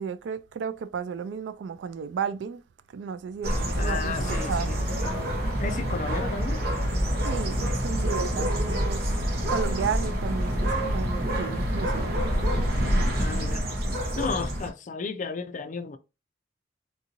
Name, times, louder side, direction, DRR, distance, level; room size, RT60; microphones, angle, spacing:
voice 1, 0.0-2.6 2.9-4.1 4.4-4.7 7.2-9.0 9.5-12.2 12.6-12.7, right 6 dB, 80° right, 0.3 m, -33 dB
sound 1, 3.4-14.7, equal, 60° right, 1.0 m, -27 dB
voice 2, 3.8-4.8 5.6-6.6 13.2-13.7 14.2-16.0, left 4 dB, 45° left, 0.4 m, -33 dB
3.6 x 2.6 x 2.8 m
head